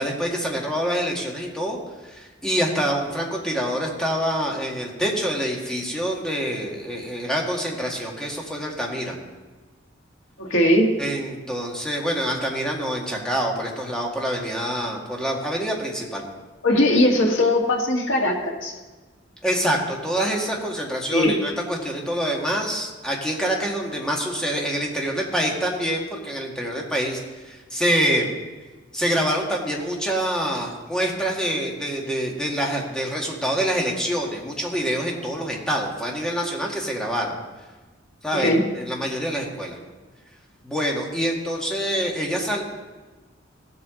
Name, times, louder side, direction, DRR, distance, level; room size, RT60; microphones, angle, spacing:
voice 1, 0.0-9.2 11.0-16.2 19.4-28.4 28.9-37.3 38.2-39.8 40.6-42.6, equal, 5° left, -1 dB, 1.7 m, -26 dB
voice 2, 10.4-10.9 16.6-18.7 21.1-21.4 38.3-38.6, left 1 dB, 90° left, 1 dB, 1.7 m, -19 dB
17.0 x 7.9 x 3.8 m, 1.3 s
head